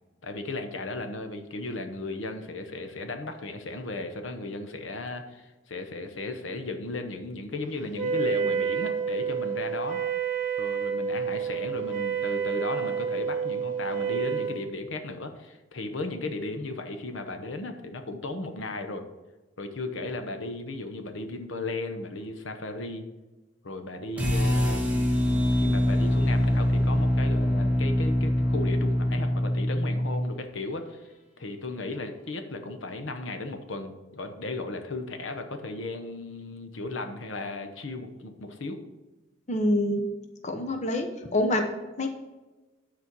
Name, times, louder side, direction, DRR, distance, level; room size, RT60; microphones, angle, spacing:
voice 1, 0.2-10.0 10.6-19.1 19.6-23.1 23.6-38.8, left 2 dB, 75° left, 6 dB, 0.9 m, -35 dB
Wind instrument woodwind instrument, 7.9-14.6, right 6 dB, 40° right, 1.5 m, -29 dB
sound 1, 24.2-30.3, left 1 dB, 5° right, 1.7 m, -24 dB
voice 2, 39.5-40.0 40.4-41.7 42.0-42.1, left 1 dB, 35° left, 5 dB, 0.8 m, -26 dB
9.7 x 4.3 x 6.0 m, 1.2 s
head